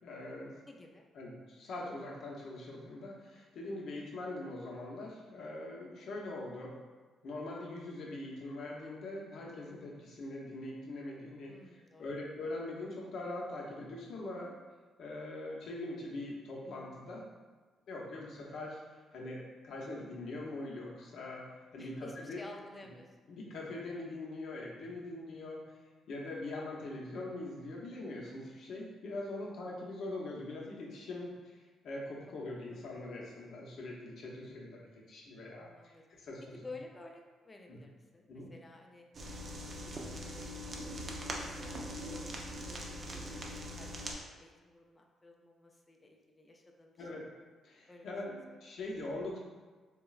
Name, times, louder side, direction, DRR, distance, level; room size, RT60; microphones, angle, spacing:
voice 1, 0.0-0.6 1.1-6.7 7.2-11.5 12.0-14.5 15.0-17.2 17.9-18.8 19.1-21.4 21.7-22.4 23.3-25.8 26.1-36.6 37.7-37.8 38.3-38.5 47.0-47.2 47.6-49.4, left 2 dB, 65° left, -3 dB, 0.6 m, -42 dB
voice 2, 0.7-1.1 11.5-12.1 21.8-23.2 32.7-32.9 35.8-36.3 36.5-39.1 39.7-40.6 41.3-41.8 42.1-42.4 42.7-43.4 43.7-47.1 47.9-48.6, left 2 dB, 25° left, 2 dB, 0.4 m, -53 dB
sound 1, 39.1-44.2, equal, 40° right, 0.4 m, -41 dB
3.6 x 2.0 x 2.3 m, 1.4 s
cardioid pair, 90°, 0 cm